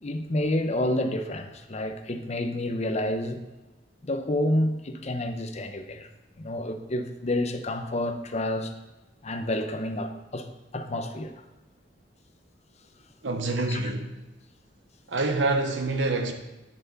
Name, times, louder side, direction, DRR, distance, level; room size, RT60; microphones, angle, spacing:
voice 1, 0.0-3.4 4.0-6.1 6.4-8.7 9.2-10.5 10.7-11.3 13.7-13.9, left 1 dB, 40° left, 0.8 m, -29 dB
voice 2, 13.2-14.2 15.1-16.3, right 2 dB, 85° right, 1.0 m, -26 dB
9.4 x 7.3 x 4.0 m
head